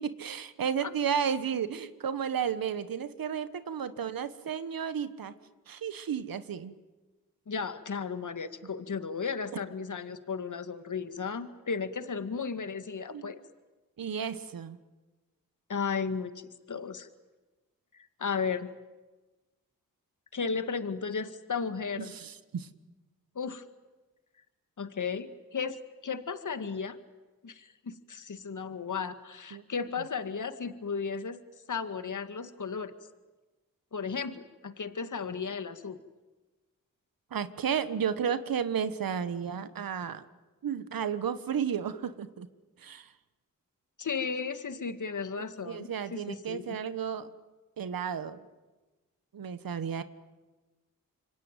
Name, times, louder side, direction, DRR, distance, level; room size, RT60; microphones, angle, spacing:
voice 1, 0.0-5.3 5.7-6.8 13.1-13.3 14.0-14.8 22.0-22.7 29.5-29.6 37.3-40.2 40.6-42.5 42.8-43.1 45.4-47.3 47.8-48.4 49.3-50.0, right 7 dB, 85° right, 13 dB, 1.4 m, -33 dB
voice 2, 7.5-13.4 15.7-17.1 17.9-18.7 20.3-22.1 23.4-23.6 24.8-27.0 27.4-31.4 31.7-32.9 33.9-36.0 44.0-46.7, left 5 dB, 60° left, 10 dB, 1.9 m, -35 dB
26.5 x 24.0 x 9.2 m, 1.2 s
cardioid pair, 45°, 34 cm